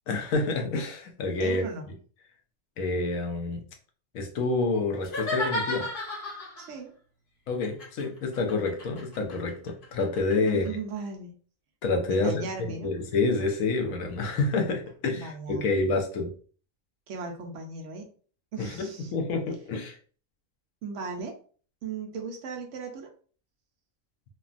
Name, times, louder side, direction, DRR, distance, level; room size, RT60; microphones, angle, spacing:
voice 1, 0.1-1.6 2.8-3.6 4.1-5.9 7.5-10.7 11.8-12.4 12.8-16.3 18.6-20.0, left 3 dB, 80° left, 4 dB, 1.0 m, -28 dB
voice 2, 1.4-1.9 6.6-6.9 10.4-11.3 12.1-12.9 15.1-15.7 17.1-18.1 18.5-19.1 20.8-21.4 21.8-23.1, right 4 dB, 70° right, 2 dB, 0.9 m, -37 dB
sound 1, 5.0-6.7 7.6-10.7, left 1 dB, 45° left, 0.9 m, -33 dB
3.2 x 2.2 x 2.4 m, 0.42 s
omnidirectional pair, 1.4 m